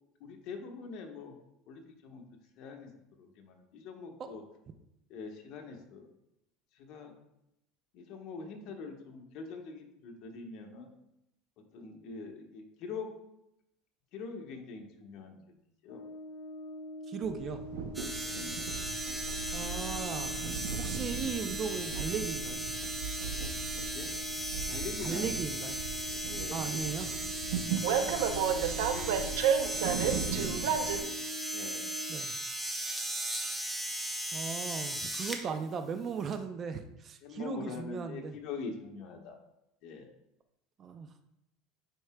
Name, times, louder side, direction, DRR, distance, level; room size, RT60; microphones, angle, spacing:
voice 1, 0.2-1.4 1.7-2.2 2.6-4.4 5.1-6.1 6.7-7.2 7.9-10.9 11.7-13.1 14.1-15.4 15.8-16.0 18.2-18.7 23.9-24.1 24.7-25.4 26.1-26.9 27.2-27.3 28.0-29.2 29.8-31.2 31.5-31.9 35.5-35.6 37.2-39.4 39.8-40.1, left 4 dB, 55° left, 3 dB, 1.1 m, -44 dB
Brass instrument, 15.9-32.3, left 1 dB, 85° left, 0.5 m, -44 dB
voice 2, 17.1-17.9 19.5-20.5 20.8-22.6 25.0-25.8 26.5-27.2 32.1-32.3 34.3-38.4 40.8-41.1, right 6 dB, 35° right, 8 dB, 0.5 m, -37 dB
Train, 17.2-31.0, right 7 dB, 80° right, 0.6 m, -34 dB
sound 1, 17.9-35.4 36.3-36.4, right 1 dB, 5° right, 0.8 m, -37 dB
9.5 x 4.6 x 2.2 m, 0.83 s
supercardioid pair, 125°, 0 cm